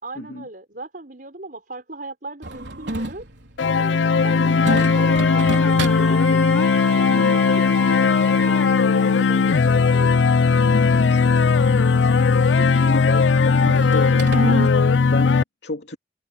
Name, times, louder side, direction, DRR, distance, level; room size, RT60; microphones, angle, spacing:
voice 1, 0.0-3.3 3.7-6.4 6.9-10.3 14.6-14.9, right 2 dB, 50° right, 5.7 m, -38 dB
sound 1, 2.4-14.7, right 2 dB, 75° right, 3.6 m, -33 dB
sound 2, 3.6-15.4, left 5 dB, 90° left, 0.5 m, -18 dB
voice 2, 4.3-4.6 7.1-7.4 10.6-14.6 15.1-16.0, left 1 dB, 70° left, 2.8 m, -31 dB
Wind instrument woodwind instrument, 4.8-8.9, left 1 dB, 5° left, 1.0 m, -31 dB
head